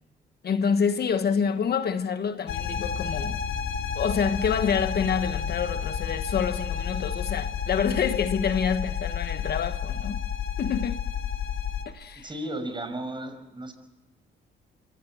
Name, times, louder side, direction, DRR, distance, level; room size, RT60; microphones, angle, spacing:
voice 1, 0.4-3.4 3.9-10.2 10.6-11.1 11.8-12.3, left 6 dB, 55° left, 1.2 m, -27 dB
sound 1, 2.5-11.8, left 8 dB, 85° left, 2.8 m, -31 dB
voice 2, 12.2-13.7, right 1 dB, 25° right, 5.7 m, -34 dB
25.5 x 16.5 x 7.7 m
cardioid pair, 90°, 20 cm